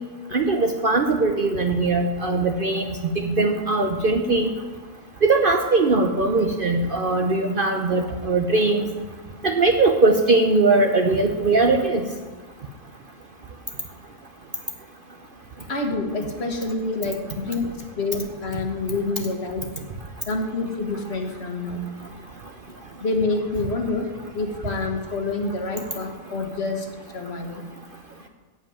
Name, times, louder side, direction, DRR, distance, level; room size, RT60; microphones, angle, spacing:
voice 1, 0.3-4.5 5.2-8.9 9.4-12.1, right 3 dB, 50° right, 4 dB, 0.8 m, -20 dB
voice 2, 15.7-19.7 20.3-21.8 23.0-24.1 24.3-26.9 27.1-27.6, left 3 dB, 50° left, 3 dB, 1.5 m, -27 dB
8.5 x 7.4 x 8.8 m, 1.3 s
omnidirectional pair, 1.5 m